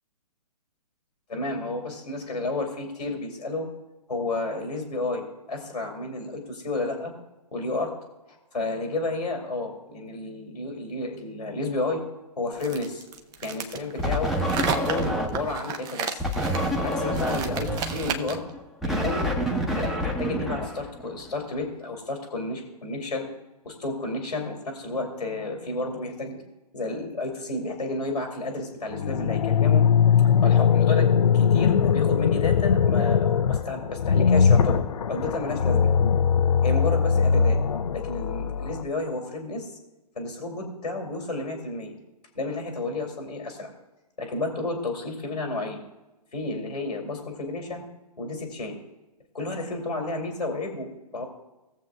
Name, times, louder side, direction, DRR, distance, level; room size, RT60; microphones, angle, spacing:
voice 1, 1.3-3.7 4.1-7.1 7.5-8.0 8.3-12.0 12.4-13.0 13.4-14.3 14.7-16.2 16.8-18.4 18.8-19.3 19.7-23.3 23.6-26.4 26.7-29.8 30.4-34.8 35.1-35.9 36.6-37.6 37.9-39.7 40.2-41.9 42.3-43.7 44.2-45.8 46.3-47.8 48.2-48.8 49.3-51.3, left 2 dB, 90° left, 1 dB, 2.3 m, -31 dB
sound 1, 12.6-18.5, right 6 dB, 20° right, 0.6 m, -33 dB
sound 2, 14.0-15.6 16.2-21.3, equal, ahead, 1.0 m, -28 dB
sound 3, 28.9-38.8, left 7 dB, 60° left, 0.6 m, -21 dB
19.0 x 7.4 x 2.3 m, 1.1 s
figure-of-eight pair, 130°, 21 cm